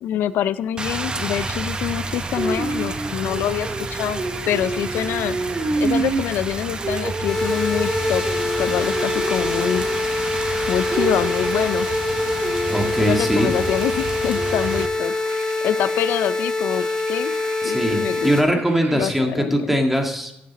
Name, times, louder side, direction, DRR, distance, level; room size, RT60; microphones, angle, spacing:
voice 1, 0.0-5.4 5.8-8.2 8.6-9.8 10.7-11.9 13.0-17.4 17.6-18.6 18.9-19.7, left 11 dB, 90° left, 15 dB, 0.4 m, -26 dB
Rain, 0.8-14.9, right 3 dB, 25° right, 0.8 m, -27 dB
sound 1, 1.4-19.2, right 4 dB, 65° right, 1.7 m, -40 dB
sound 2, 7.3-18.4, left 3 dB, 20° left, 1.6 m, -25 dB
voice 2, 12.6-13.5 17.6-20.4, equal, 5° right, 3 dB, 1.7 m, -21 dB
14.0 x 7.6 x 4.1 m, 0.83 s
cardioid pair, 95°, 3 cm